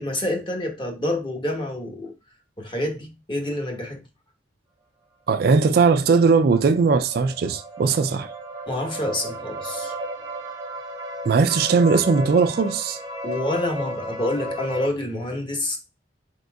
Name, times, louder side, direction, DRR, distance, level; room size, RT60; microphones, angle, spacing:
voice 1, 0.0-2.1 2.6-4.0 8.7-9.9 13.2-15.8, left 1 dB, 25° left, 1.1 m, -27 dB
voice 2, 5.3-8.3 11.2-13.0, right 4 dB, 55° right, 0.3 m, -19 dB
sound 1, 5.6-14.9, equal, 20° right, 0.7 m, -34 dB
4.2 x 3.9 x 2.3 m
head